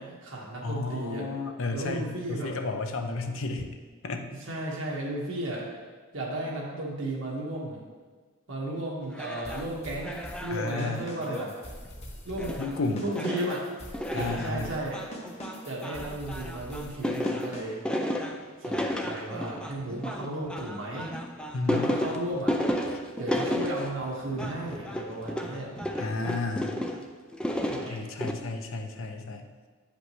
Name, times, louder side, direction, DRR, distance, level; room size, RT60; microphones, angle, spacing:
voice 1, 0.0-1.2 1.7-2.5 4.5-5.6 6.1-7.8 8.5-11.5 12.2-12.5 13.0-13.6 14.1-15.0 15.6-17.8 18.6-21.1 21.7-22.5 23.2-25.7 27.6-28.1, right 1 dB, 60° right, -4 dB, 1.6 m, -34 dB
voice 2, 0.6-3.7 4.0-4.3 10.5-11.1 12.6-13.0 14.1-14.7 21.5-22.0 26.0-26.7 27.9-29.5, left 3 dB, 70° left, 5 dB, 0.6 m, -32 dB
sound 1, 9.1-9.7 10.0-10.6 11.2-11.5 11.8-11.9 12.4-12.8 13.1-27.0 27.3-28.3, equal, 5° left, 0.3 m, -32 dB
sound 2, 9.4-17.9, equal, 30° left, 0.8 m, -44 dB
8.6 x 5.1 x 3.2 m, 1.4 s
head